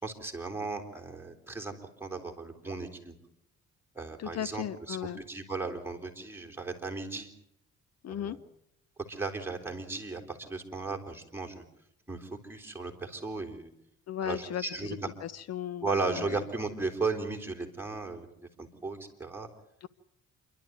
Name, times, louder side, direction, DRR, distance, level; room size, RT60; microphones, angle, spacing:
voice 1, 0.0-1.7 2.0-3.2 3.9-7.3 8.1-8.4 9.1-11.6 12.1-13.7 14.2-15.1 15.8-18.3 18.6-19.5, right 3 dB, 5° right, 1 dB, 4.0 m, -36 dB
voice 2, 4.2-5.2 8.0-8.4 14.1-16.4 19.8-19.9, left 10 dB, 60° left, 17 dB, 0.8 m, -37 dB
28.0 x 12.5 x 9.5 m, 0.77 s
cardioid pair, 90°, 30 cm